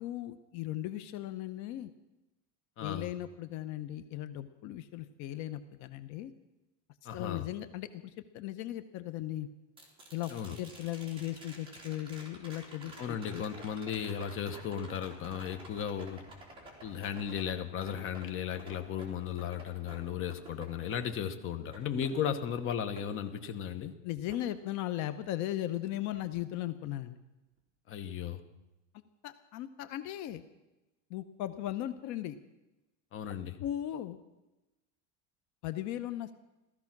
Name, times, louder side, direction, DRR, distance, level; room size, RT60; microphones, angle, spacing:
voice 1, 0.0-1.9 2.8-6.3 7.1-9.5 10.1-10.3 10.6-13.4 24.0-27.2 29.2-30.4 31.1-32.4 33.6-34.2 35.6-36.3, left 13 dB, 55° left, 11 dB, 0.8 m, -37 dB
voice 2, 2.8-3.1 7.0-7.5 10.3-10.6 13.0-16.2 16.8-23.9 27.9-28.4 33.1-33.6, left 8 dB, 35° left, 9 dB, 1.2 m, -35 dB
sound 1, 9.8-23.9 24.3-25.3 27.6-27.7, right 1 dB, 15° right, 3.3 m, -52 dB
16.0 x 14.0 x 6.0 m, 1.0 s
cardioid pair, 155°, 36 cm